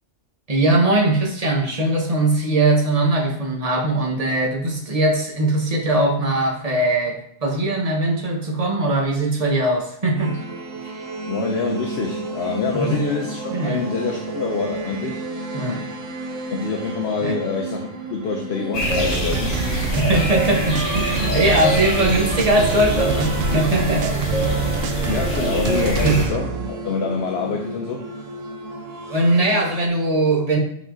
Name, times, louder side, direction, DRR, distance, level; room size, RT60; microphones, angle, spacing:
voice 1, 0.5-10.4 10.8-11.0 12.7-13.0 13.5-13.8 15.5-15.8 17.2-17.4 19.6-24.1 25.0-25.1 26.0-26.2 29.1-30.6, right 2 dB, 30° right, -1 dB, 1.3 m, -20 dB
sound 1, 10.2-29.9, right 3 dB, 90° right, 1.3 m, -32 dB
voice 2, 11.3-15.3 16.5-19.6 25.1-28.1, left 4 dB, 60° left, 2 dB, 1.0 m, -26 dB
sound 2, 18.7-26.3, left 1 dB, 85° left, 1.9 m, -25 dB
sound 3, 18.8-26.7, right 8 dB, 60° right, 0.6 m, -28 dB
5.5 x 5.4 x 3.8 m, 0.68 s
omnidirectional pair, 1.3 m